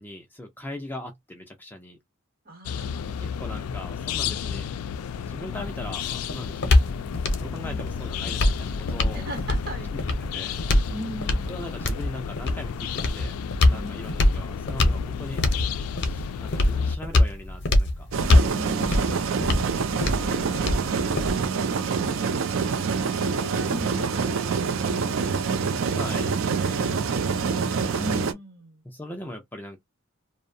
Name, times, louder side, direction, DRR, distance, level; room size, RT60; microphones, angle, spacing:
voice 1, 0.0-2.0 3.2-4.7 5.3-6.8 7.4-9.3 9.9-10.1 10.3-10.5 11.5-13.4 13.7-15.4 15.7-18.1 18.8-19.2 19.5-20.8 25.9-26.9 27.7-28.0 28.8-29.8, left 1 dB, 10° left, 0.4 m, -40 dB
voice 2, 2.4-3.2 7.6-7.8 9.1-10.0 10.9-11.5 13.7-14.1 18.5-19.2 22.7-25.9 28.0-28.8, equal, 45° right, 0.9 m, -39 dB
sound 1, 2.6-17.0, left 7 dB, 90° left, 0.3 m, -32 dB
sound 2, 5.6-21.6, left 1 dB, 55° left, 0.6 m, -24 dB
sound 3, 18.1-28.3, right 5 dB, 60° right, 0.4 m, -26 dB
2.6 x 2.0 x 2.6 m
head